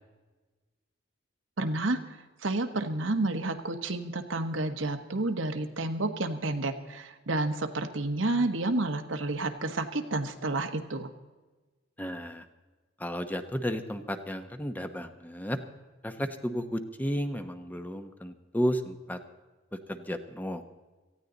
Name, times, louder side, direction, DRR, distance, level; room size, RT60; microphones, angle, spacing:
voice 1, 1.6-2.0 2.4-11.1, right 2 dB, 85° right, 6 dB, 1.4 m, -30 dB
voice 2, 12.0-12.4 13.0-15.6 16.0-19.2 19.9-20.6, equal, 10° left, 8 dB, 0.9 m, -33 dB
18.5 x 14.5 x 4.0 m, 1.2 s
head